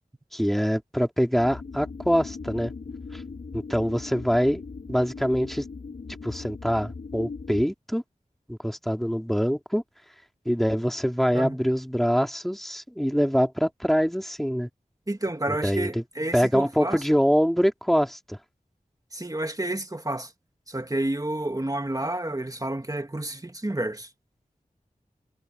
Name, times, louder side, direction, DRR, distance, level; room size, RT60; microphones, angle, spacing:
voice 1, 0.3-2.7 3.1-3.2 3.5-4.6 4.9-5.6 6.2-8.0 8.5-9.8 10.4-14.7 15.5-15.9 16.3-18.4, equal, ahead, 2.9 m, -24 dB
sound 1, 1.3-7.7, left 4 dB, 90° left, 7.1 m, -39 dB
voice 2, 15.1-17.0 19.1-20.3 20.7-24.1, right 1 dB, 25° right, 2.2 m, -30 dB
wide cardioid pair, 40°, 15 cm